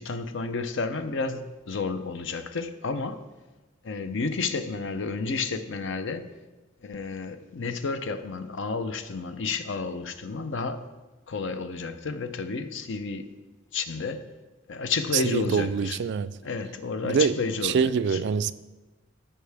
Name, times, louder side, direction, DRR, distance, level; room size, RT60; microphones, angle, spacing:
voice 1, 0.0-3.2 3.8-6.3 6.8-10.9 11.3-13.3 13.7-14.3 14.7-16.0 16.4-18.2, left 4 dB, 65° left, 0.6 m, -31 dB
voice 2, 15.1-16.3 17.0-17.4 17.6-18.5, right 6 dB, 60° right, 0.3 m, -24 dB
14.0 x 5.5 x 3.4 m
head